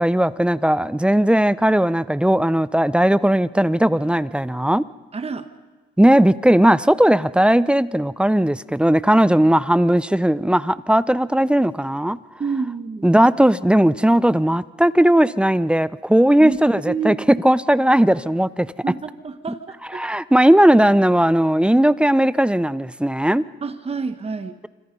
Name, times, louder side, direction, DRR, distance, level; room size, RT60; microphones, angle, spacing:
voice 1, 0.0-4.8 6.0-12.2 13.0-18.7 19.9-23.4, right 1 dB, 5° right, 0.6 m, -17 dB
voice 2, 5.1-5.5 12.4-13.1 16.4-16.6 16.9-17.2 18.8-20.0 23.6-24.6, right 5 dB, 30° right, 1.6 m, -28 dB
26.5 x 26.0 x 5.5 m
cardioid pair, 90°, 20 cm